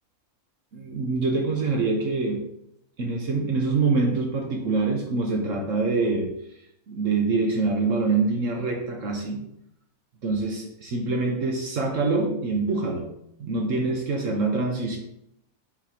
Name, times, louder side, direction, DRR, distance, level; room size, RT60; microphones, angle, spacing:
voice 1, 0.7-2.4 3.0-6.3 6.9-9.4 10.2-13.1 13.4-15.0, right 3 dB, 65° right, 1 dB, 1.3 m, -25 dB
5.8 x 3.3 x 5.8 m, 0.77 s
omnidirectional pair, 1.5 m